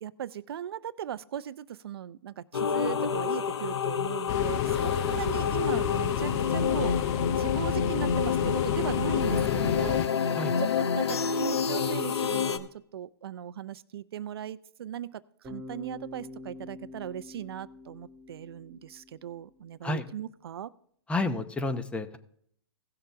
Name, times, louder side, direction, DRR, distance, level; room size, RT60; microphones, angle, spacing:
voice 1, 0.0-7.0 7.3-20.7, right 10 dB, 65° right, 17 dB, 0.5 m, -38 dB
sound 1, 2.5-12.6, left 7 dB, 85° left, 0.9 m, -28 dB
sound 2, 4.3-10.1, left 14 dB, 35° left, 0.4 m, -33 dB
Bass guitar, 15.4-19.5, left 2 dB, 20° right, 1.7 m, -46 dB
voice 2, 21.1-22.2, left 2 dB, 10° left, 10 dB, 0.7 m, -30 dB
16.5 x 6.7 x 3.4 m, 0.64 s
hypercardioid pair, 130°, 14 cm